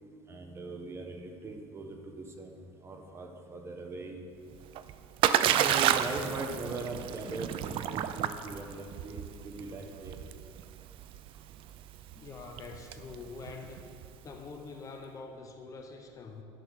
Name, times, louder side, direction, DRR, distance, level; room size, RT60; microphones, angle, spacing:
voice 1, 0.3-4.2 5.5-10.2, right 2 dB, 20° right, 3 dB, 0.8 m, -40 dB
Splash splatter, 4.5-14.4, right 10 dB, 45° right, 0.4 m, -31 dB
voice 2, 12.1-13.9 14.2-16.4, left 4 dB, 25° left, 4 dB, 0.7 m, -45 dB
10.5 x 6.0 x 6.2 m, 2.4 s
cardioid pair, 165°, 12 cm